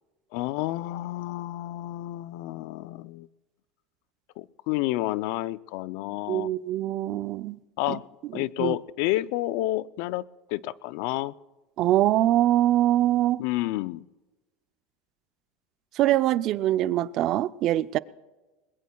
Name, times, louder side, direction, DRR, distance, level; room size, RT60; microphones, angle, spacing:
voice 1, 0.3-3.3 4.4-6.5 7.8-8.0 8.3-11.3 13.4-14.1, left 16 dB, 70° left, 0.4 m, -30 dB
voice 2, 6.3-7.6 7.9-8.0 8.3-8.8 11.8-13.4 16.0-18.0, right 13 dB, 50° right, 0.4 m, -23 dB
21.5 x 21.0 x 2.3 m
supercardioid pair, 115°, 0 cm